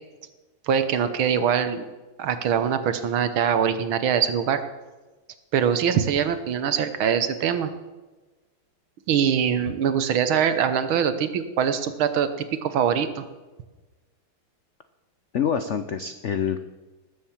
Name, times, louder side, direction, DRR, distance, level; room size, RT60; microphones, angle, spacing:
voice 1, 0.6-1.8 2.2-4.6 5.5-7.7 9.1-13.2, right 8 dB, 80° right, 10 dB, 1.9 m, -23 dB
voice 2, 15.3-16.6, left 8 dB, 90° left, 9 dB, 0.6 m, -26 dB
20.0 x 7.6 x 7.3 m, 1.2 s
omnidirectional pair, 2.2 m